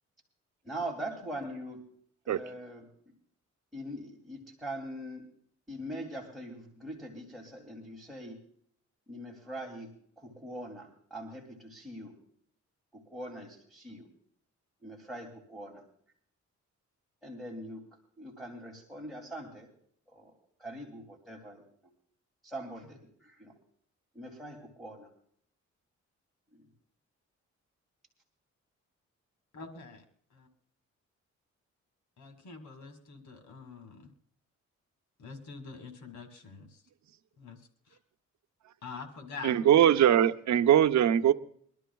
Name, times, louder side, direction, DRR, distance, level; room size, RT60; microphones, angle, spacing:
voice 1, 0.6-1.8 2.2-2.9 3.7-5.2 5.7-8.4 9.1-9.9 10.2-12.2 12.9-14.1 14.8-15.8 17.2-17.8 18.2-19.7 20.1-20.3 20.6-21.6 22.4-23.5 24.1-25.1, right 1 dB, ahead, 2.6 m, -42 dB
voice 2, 29.5-30.0 30.3-30.5 32.2-34.1 35.2-36.8 37.4-38.0 38.8-39.7, left 4 dB, 80° left, 2.2 m, -45 dB
voice 3, 39.4-41.3, right 10 dB, 75° right, 0.8 m, -21 dB
24.0 x 12.5 x 2.3 m
cardioid pair, 105°, 29 cm